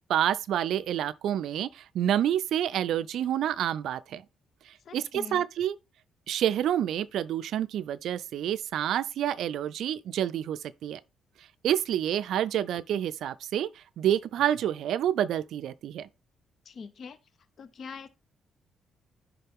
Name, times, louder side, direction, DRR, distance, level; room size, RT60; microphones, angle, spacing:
voice 1, 0.1-4.2 4.7-5.7 6.3-11.0 11.6-16.1, right 10 dB, 75° right, 0.3 m, -28 dB
voice 2, 4.8-5.4 16.6-17.2 17.6-18.1, left 5 dB, 55° left, 0.6 m, -42 dB
10.0 x 3.7 x 3.5 m
cardioid pair, 90°, 0 cm